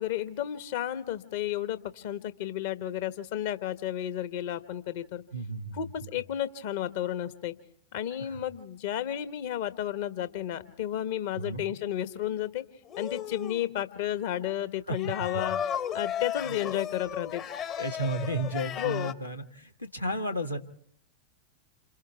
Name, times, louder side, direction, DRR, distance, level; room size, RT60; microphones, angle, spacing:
voice 1, 0.0-5.2 5.7-7.5 7.9-12.6 13.0-15.6 15.9-17.4 18.8-19.1, left 11 dB, 50° left, 12 dB, 1.2 m, -32 dB
voice 2, 5.3-5.9 8.2-8.4 11.3-11.7 14.9-15.4 16.4-16.6 17.8-20.6, right 1 dB, 90° left, 2 dB, 1.4 m, -33 dB
sound 1, 12.9-13.7 14.9-19.1, left 9 dB, 35° left, 0.9 m, -35 dB
28.0 x 27.5 x 3.5 m, 0.65 s
figure-of-eight pair, 90°, 0 cm